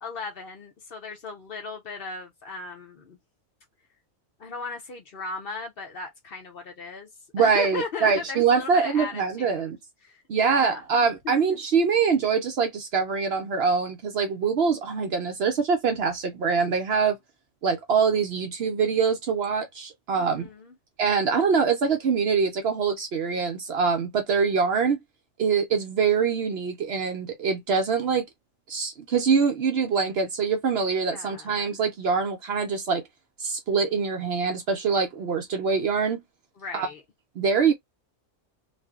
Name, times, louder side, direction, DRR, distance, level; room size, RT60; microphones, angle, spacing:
voice 1, 0.0-3.2 4.4-7.1 7.4-9.7 10.0-10.8 11.2-11.4 20.2-20.8 31.1-31.6 36.6-37.0, left 4 dB, 50° left, 0.8 m, -37 dB
voice 2, 7.3-9.8 10.3-17.2 17.6-20.5 21.0-25.0 25.4-28.3 28.7-33.0 33.4-36.2 36.7-36.9 37.4-37.7, right 5 dB, 60° right, 0.8 m, -24 dB
2.7 x 2.5 x 2.3 m
omnidirectional pair, 1.4 m